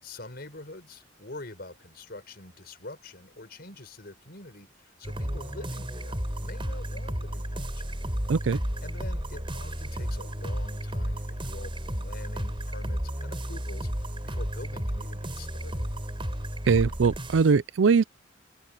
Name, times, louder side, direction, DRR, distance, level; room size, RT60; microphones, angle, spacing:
voice 1, 0.0-8.0 8.8-15.8, left 2 dB, 55° left, 5.6 m, -45 dB
sound 1, 5.0-17.5, equal, 25° right, 5.3 m, -33 dB
voice 2, 16.7-18.0, right 5 dB, 85° right, 0.5 m, -21 dB
open air
head